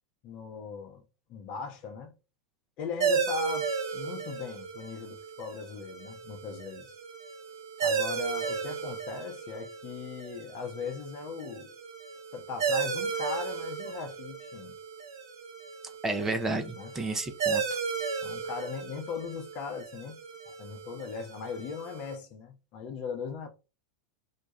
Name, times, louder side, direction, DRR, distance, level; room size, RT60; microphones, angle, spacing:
voice 1, 0.2-1.0 1.3-2.1 2.8-7.0 7.8-11.7 12.3-14.8 16.8-16.9 18.2-20.2 20.5-23.5, left 5 dB, 45° left, 0.7 m, -39 dB
sound 1, 3.0-22.1, right 6 dB, 70° right, 0.7 m, -35 dB
voice 2, 16.0-17.8, right 2 dB, 15° right, 0.4 m, -31 dB
2.3 x 2.2 x 2.9 m
hypercardioid pair, 95°, 2 cm